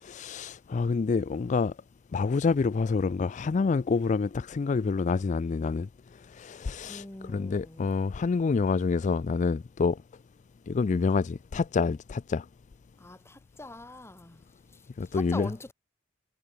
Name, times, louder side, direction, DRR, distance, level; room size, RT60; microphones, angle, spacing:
voice 1, 0.0-1.7 2.1-5.9 6.3-10.0 10.7-12.5 15.0-15.5, left 4 dB, 40° left, 0.4 m, -27 dB
voice 2, 6.8-7.8 13.0-14.4 15.1-15.7, left 2 dB, 15° left, 1.0 m, -42 dB
head